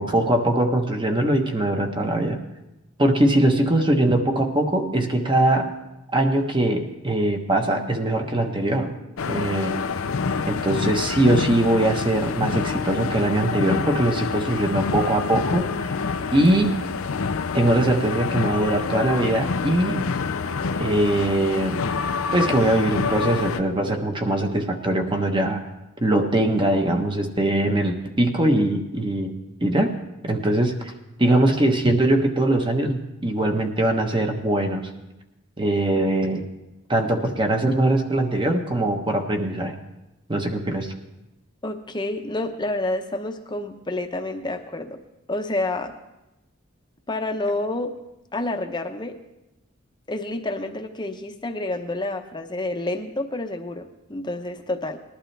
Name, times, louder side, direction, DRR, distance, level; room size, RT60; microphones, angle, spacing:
voice 1, 0.0-2.4 3.0-5.7 6.1-9.0 9.3-9.8 10.5-15.7 16.3-16.8 17.5-20.0 20.8-21.9 22.3-25.6 26.0-29.3 29.6-29.9 30.2-30.9 31.2-34.9 35.6-36.4 36.9-39.8 40.3-40.9, right 1 dB, 25° right, 4 dB, 1.1 m, -21 dB
sound 1, 9.2-23.6, left 5 dB, 85° left, 0.6 m, -27 dB
voice 2, 41.6-45.0 45.3-45.9 47.1-47.9 48.3-49.2 50.1-55.0, left 2 dB, 20° left, 5 dB, 0.8 m, -29 dB
19.5 x 11.5 x 3.3 m, 0.95 s
head